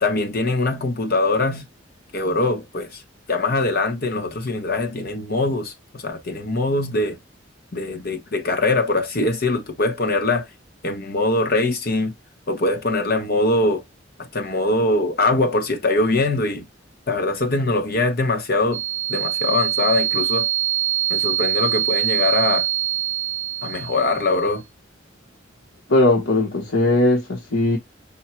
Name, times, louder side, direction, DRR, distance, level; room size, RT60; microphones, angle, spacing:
voice 1, 0.0-1.7 2.1-3.0 3.3-7.2 7.7-10.5 10.8-12.1 12.5-13.8 14.2-16.7 17.1-18.8 19.1-20.5 21.1-22.7 23.6-24.6, left 2 dB, 50° left, 1.1 m, -22 dB
sound 1, 18.7-24.4, right 13 dB, 70° right, 0.3 m, -24 dB
voice 2, 25.9-27.8, left 2 dB, 90° left, 1.1 m, -18 dB
5.5 x 2.2 x 4.4 m
head